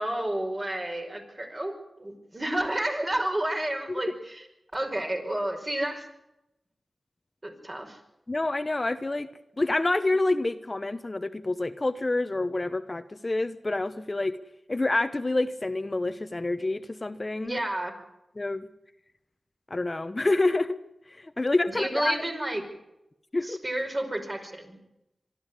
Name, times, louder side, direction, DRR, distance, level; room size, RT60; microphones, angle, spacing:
voice 1, 0.0-1.7 2.0-4.5 4.7-6.1 7.4-8.0 17.4-17.9 21.7-22.6 23.4-24.8, right 1 dB, 35° right, 3 dB, 5.4 m, -30 dB
voice 2, 8.3-9.3 9.6-14.4 14.7-17.6 18.4-18.7 19.7-20.8 21.2-22.2 23.3-23.6, left 2 dB, 35° left, 10 dB, 1.0 m, -27 dB
24.0 x 13.0 x 9.7 m, 0.90 s
cardioid pair, 55°, 0 cm